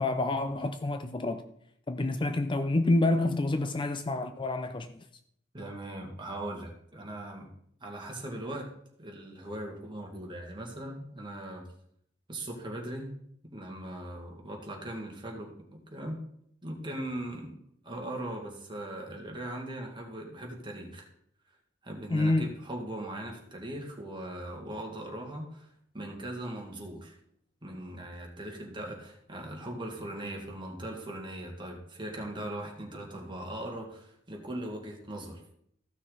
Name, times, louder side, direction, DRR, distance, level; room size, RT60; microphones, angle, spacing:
voice 1, 0.0-1.5 1.9-5.0 22.1-22.5, left 2 dB, 25° left, 0.5 m, -28 dB
voice 2, 5.5-7.5 7.8-8.7 9.0-11.6 12.3-13.1 13.5-16.2 16.6-17.6 17.8-21.1 21.8-25.7 25.9-27.2 27.6-35.4, right 1 dB, 25° right, 2.1 m, -39 dB
14.5 x 6.2 x 4.0 m
head